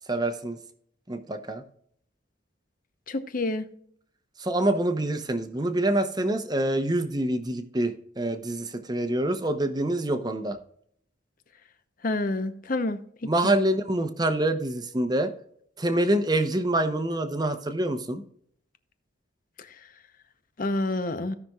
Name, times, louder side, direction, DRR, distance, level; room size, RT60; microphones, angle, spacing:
voice 1, 0.1-0.6 1.1-1.6 4.4-10.6 13.2-15.3 15.8-18.2, right 1 dB, 20° right, 8 dB, 0.8 m, -26 dB
voice 2, 3.1-3.7 12.0-13.0 20.6-21.4, left 2 dB, 45° left, 10 dB, 0.8 m, -28 dB
16.5 x 5.8 x 2.4 m, 0.66 s
head